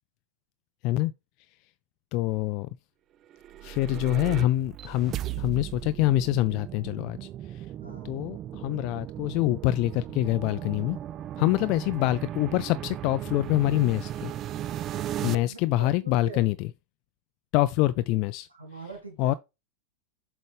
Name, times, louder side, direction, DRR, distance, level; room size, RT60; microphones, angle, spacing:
voice 1, 2.1-2.7 3.6-7.7 8.0-11.0 11.4-14.3 14.9-16.7 17.5-18.5 19.2-19.3, left 16 dB, 40° left, 0.3 m, -26 dB
sound 1, 3.3-15.4, right 12 dB, 30° right, 0.4 m, -36 dB
voice 2, 3.8-4.4 7.8-8.2 11.6-11.8 15.2-16.5 18.5-19.4, right 3 dB, 80° right, 2.9 m, -43 dB
7.7 x 4.9 x 3.4 m
figure-of-eight pair, 90°, 0 cm